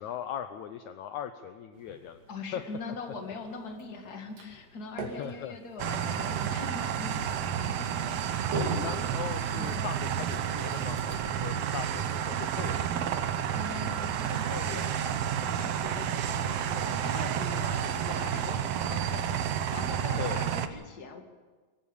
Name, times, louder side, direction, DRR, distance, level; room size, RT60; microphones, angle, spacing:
voice 1, 0.0-2.2 2.5-2.6 5.0-5.6 8.5-13.1 20.2-20.5, left 10 dB, 80° left, 9 dB, 1.7 m, -39 dB
sound 1, 1.7-11.5, right 3 dB, 65° right, 4.1 m, -43 dB
voice 2, 2.3-9.0 9.5-9.9 12.7-12.9 13.5-21.2, left 4 dB, 35° left, 4 dB, 1.9 m, -42 dB
sound 2, 5.8-20.7, right 9 dB, 85° right, 1.4 m, -30 dB
24.0 x 15.0 x 7.2 m, 1.4 s
omnidirectional pair, 4.2 m